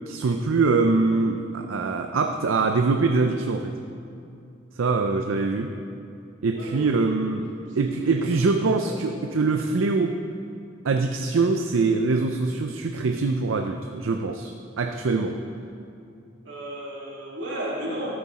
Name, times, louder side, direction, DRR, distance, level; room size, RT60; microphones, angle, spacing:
voice 1, 0.1-3.7 4.7-5.7 6.4-10.2 10.8-15.4, right 3 dB, 85° right, 5 dB, 0.5 m, -23 dB
voice 2, 6.5-7.0 8.0-8.1 8.5-8.6 8.8-9.0 16.4-18.1, right 1 dB, 70° right, -6 dB, 3.1 m, -33 dB
13.5 x 8.6 x 4.2 m, 2.6 s
head